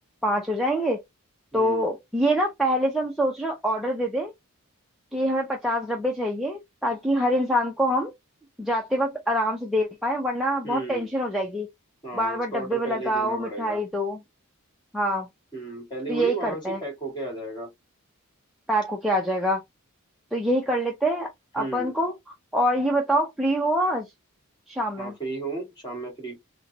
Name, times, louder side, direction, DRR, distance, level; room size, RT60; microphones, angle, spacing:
voice 1, 0.2-1.0 1.5-4.3 5.1-8.1 8.6-11.7 12.2-14.2 14.9-15.3 16.1-16.8 18.7-19.6 20.3-21.3 21.5-22.1 22.5-24.1 24.7-25.1, equal, ahead, 0.6 m, -25 dB
voice 2, 1.5-1.9 10.6-11.1 12.0-13.8 15.5-17.7 21.6-21.9 25.0-26.4, right 2 dB, 20° left, 2.1 m, -34 dB
4.3 x 2.2 x 2.8 m
head